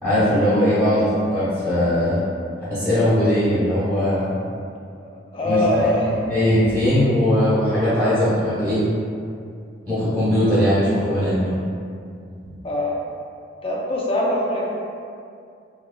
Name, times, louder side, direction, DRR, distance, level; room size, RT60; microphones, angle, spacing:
voice 1, 0.0-1.1 1.3-2.2 2.7-4.4 5.4-5.6 6.0-8.8 9.9-11.5, left 1 dB, 20° right, -14 dB, 1.0 m, -19 dB
voice 2, 5.0-6.1 12.6-13.0 13.6-14.7, left 1 dB, 30° left, -3 dB, 0.4 m, -23 dB
3.0 x 2.3 x 2.2 m, 2.4 s
head